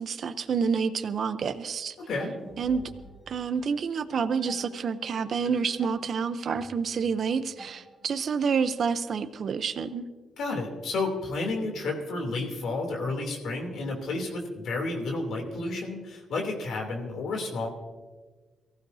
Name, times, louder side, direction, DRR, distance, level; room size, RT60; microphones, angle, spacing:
voice 1, 0.0-2.0 2.6-2.8 3.3-10.0, right 6 dB, 50° right, 10 dB, 0.7 m, -28 dB
sound 1, 2.2-8.4, right 1 dB, 5° left, 3.2 m, -49 dB
voice 2, 10.4-17.7, left 2 dB, 75° left, 1 dB, 2.9 m, -31 dB
23.5 x 15.0 x 2.7 m, 1.3 s
cardioid pair, 120°, 0 cm